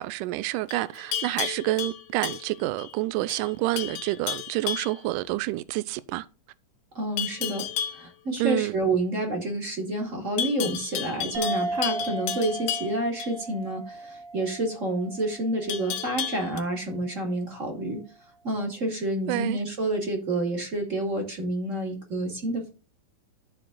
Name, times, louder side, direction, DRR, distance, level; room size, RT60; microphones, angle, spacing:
voice 1, 0.0-6.3 8.4-8.8 19.3-19.6, right 17 dB, 80° right, 2.1 m, -28 dB
Livestock farm animals working animals, 0.7-2.9 3.3-3.5 3.8-5.0 7.2-8.0 10.4-13.3 15.7-16.6, left 9 dB, 75° left, 2.4 m, -33 dB
voice 2, 6.9-7.7 7.9-18.0 18.4-22.7, right 1 dB, 25° right, 2.3 m, -29 dB
sound 1, 11.3-16.3, right 2 dB, 55° right, 2.5 m, -35 dB
13.0 x 4.7 x 3.8 m
omnidirectional pair, 3.8 m